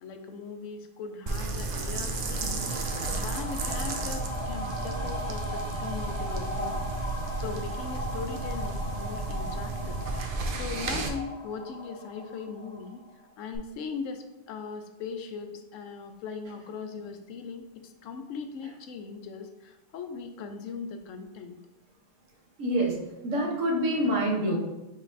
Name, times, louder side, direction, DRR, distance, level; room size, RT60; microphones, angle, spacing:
voice 1, 0.0-6.8 7.4-13.0 13.4-21.6, left 5 dB, 80° left, 7 dB, 0.9 m, -39 dB
sound 1, 1.3-11.1, right 3 dB, 55° right, 0.6 m, -33 dB
sound 2, 1.8-13.2 13.5-13.6, left 1 dB, 5° left, 1.0 m, -39 dB
voice 2, 22.6-24.6, right 1 dB, 80° right, -1 dB, 1.3 m, -26 dB
5.2 x 4.0 x 2.6 m, 1.0 s
omnidirectional pair, 1.3 m